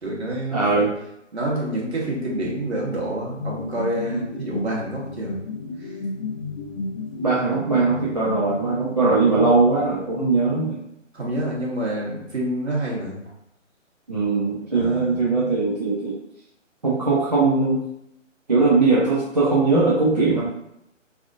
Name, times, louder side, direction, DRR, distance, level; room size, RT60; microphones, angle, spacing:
voice 1, 0.0-0.9 1.3-5.4 5.8-5.9 11.1-13.2 14.7-15.1, right 1 dB, 55° right, -4 dB, 1.3 m, -27 dB
voice 2, 0.5-0.9 4.1-4.3 7.2-10.8 14.1-16.1 16.8-17.8 18.5-20.4, right 3 dB, 35° right, -6 dB, 0.5 m, -20 dB
sound 1, 3.4-10.1, left 3 dB, 45° left, 0.9 m, -33 dB
3.4 x 2.5 x 2.4 m, 0.81 s
figure-of-eight pair, 145°, 38 cm